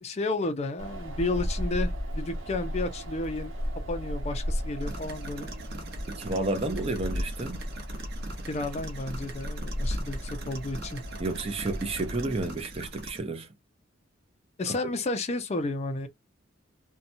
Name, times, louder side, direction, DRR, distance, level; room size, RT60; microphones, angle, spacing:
voice 1, 0.0-3.5 3.9-5.5 8.5-11.0 14.6-16.1, left 2 dB, 30° left, 0.4 m, -32 dB
Wind, 0.8-12.4, equal, 80° right, 1.0 m, -35 dB
sound 1, 4.8-13.2, right 1 dB, 55° right, 0.9 m, -42 dB
voice 2, 6.1-7.6 11.2-13.5 14.7-14.8, right 2 dB, 30° right, 0.5 m, -31 dB
2.7 x 2.2 x 2.5 m
head